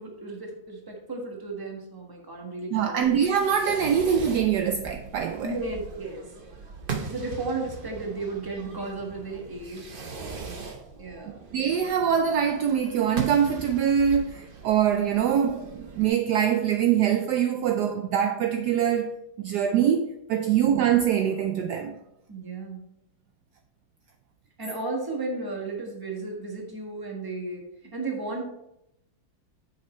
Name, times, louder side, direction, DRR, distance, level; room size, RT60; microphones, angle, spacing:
voice 1, 0.0-3.0 5.4-6.2 6.9-9.9 11.0-11.4 20.4-20.7 22.3-22.8 24.6-28.4, right 3 dB, 15° right, 1.2 m, -34 dB
voice 2, 2.7-5.6 11.5-22.0, right 8 dB, 80° right, 0.9 m, -24 dB
Fireworks, 3.0-16.1, right 5 dB, 60° right, 0.5 m, -39 dB
7.4 x 5.8 x 4.4 m
omnidirectional pair, 2.3 m